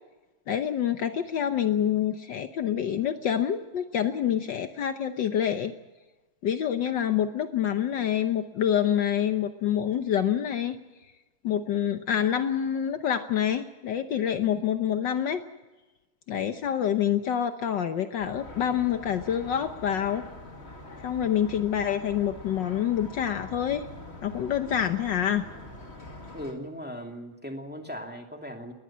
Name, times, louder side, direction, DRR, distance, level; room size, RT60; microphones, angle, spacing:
voice 1, 0.5-5.7 6.4-10.8 11.4-15.4 16.3-20.3 21.0-23.9 24.2-25.5, left 9 dB, 65° left, 8 dB, 1.5 m, -27 dB
sound 1, 18.2-26.5, left 2 dB, 30° left, 2.7 m, -44 dB
voice 2, 26.3-28.7, equal, 5° right, 3 dB, 2.5 m, -38 dB
20.5 x 20.5 x 7.4 m, 1.2 s
omnidirectional pair, 2.2 m